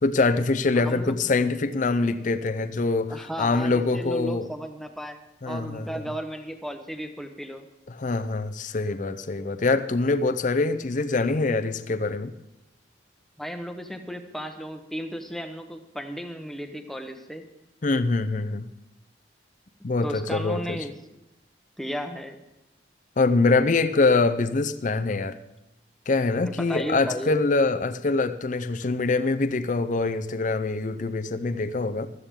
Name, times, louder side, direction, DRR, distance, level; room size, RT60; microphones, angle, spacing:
voice 1, 0.0-4.5 5.4-5.9 7.9-12.3 17.8-18.7 19.8-20.8 23.2-25.4 26.1-32.1, left 3 dB, 45° left, 10 dB, 0.6 m, -24 dB
voice 2, 0.7-1.2 3.1-5.2 5.5-7.7 13.4-17.5 20.0-20.9 21.8-22.4 26.5-27.4, equal, ahead, 5 dB, 1.0 m, -34 dB
16.0 x 13.0 x 3.7 m, 0.92 s
head